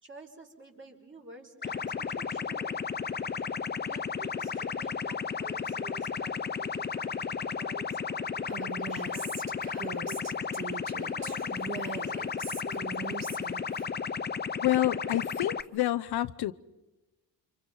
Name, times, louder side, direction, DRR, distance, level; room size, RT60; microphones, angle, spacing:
voice 1, 0.0-2.9 3.8-10.3 11.0-13.3 15.0-15.1, right 2 dB, 30° right, 1 dB, 5.5 m, -50 dB
sound 1, 1.6-15.6, left 6 dB, 25° left, 0.8 m, -34 dB
Female speech woman speaking, 8.5-13.9, right 6 dB, 55° right, 3.9 m, -41 dB
voice 2, 14.6-16.5, left 14 dB, 70° left, 11 dB, 0.9 m, -28 dB
29.5 x 27.0 x 5.5 m, 1.1 s
cardioid pair, 120°, 40 cm